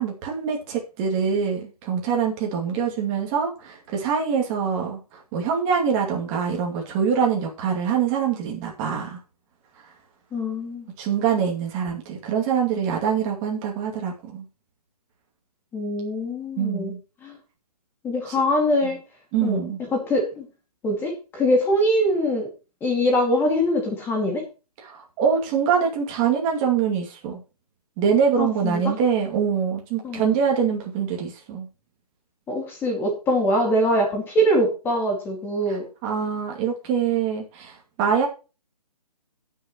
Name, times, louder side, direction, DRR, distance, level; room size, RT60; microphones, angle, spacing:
voice 1, 0.0-9.2 11.0-14.4 16.6-17.0 18.3-18.4 19.3-19.8 24.8-27.4 28.0-31.7 35.7-38.3, right 7 dB, 20° right, 0 dB, 2.4 m, -24 dB
voice 2, 10.3-10.9 15.7-16.9 17.2-17.4 18.0-19.0 19.4-20.5 20.8-22.5 22.8-24.4 28.4-28.9 30.0-30.2 32.5-35.9, equal, 10° left, 3 dB, 2.1 m, -23 dB
17.5 x 6.6 x 3.0 m, 0.32 s
hypercardioid pair, 150°, 20 cm